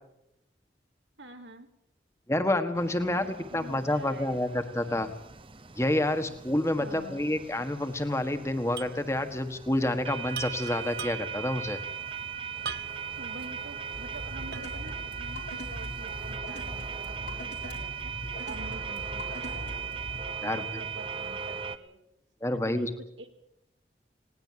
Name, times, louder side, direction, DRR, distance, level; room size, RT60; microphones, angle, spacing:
voice 1, 1.2-1.7 3.0-4.7 6.7-7.3 12.6-12.7 13.2-18.1 18.5-19.9 20.4-22.0 22.5-23.3, right 2 dB, 90° right, 6 dB, 2.4 m, -47 dB
voice 2, 2.3-5.1 5.8-11.8 20.4-20.8 22.4-22.9, left 1 dB, 15° left, 8 dB, 1.5 m, -28 dB
sound 1, 2.7-21.8, right 7 dB, 30° right, 0.8 m, -39 dB
sound 2, 8.8-9.0 9.3-9.4 10.3-11.5 12.6-13.2 13.7-13.8 14.5-14.9, right 6 dB, 60° right, 0.9 m, -39 dB
sound 3, 13.9-20.3, left 1 dB, 75° left, 3.5 m, -41 dB
19.5 x 18.0 x 7.6 m, 0.83 s
head